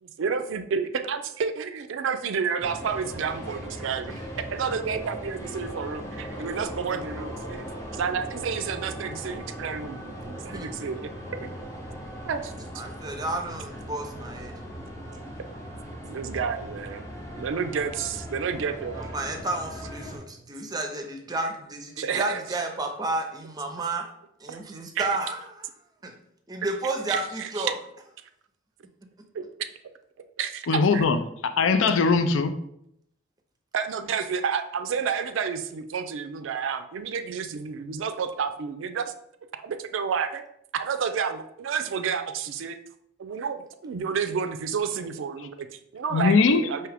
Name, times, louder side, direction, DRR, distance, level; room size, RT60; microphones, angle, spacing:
voice 1, 0.0-4.2 4.5-7.6 7.9-11.1 11.4-11.5 12.2-12.5 16.1-17.1 17.3-19.1 22.0-22.4 24.5-24.6 24.9-25.1 27.1-27.7 29.3-29.4 30.4-31.0 33.7-39.1 39.6-40.4 40.7-42.8 43.2-46.9, right 6 dB, 75° right, 9 dB, 0.4 m, -30 dB
sound 1, 2.6-20.2, equal, 15° left, 0.7 m, -38 dB
voice 2, 12.8-14.6 19.0-24.1 24.4-25.7 26.0-26.1 26.5-27.8, right 2 dB, 20° right, 4 dB, 0.5 m, -32 dB
voice 3, 30.7-31.2 31.4-32.5 46.1-46.6, left 4 dB, 75° left, 9 dB, 0.4 m, -20 dB
4.7 x 2.8 x 3.4 m, 0.73 s
head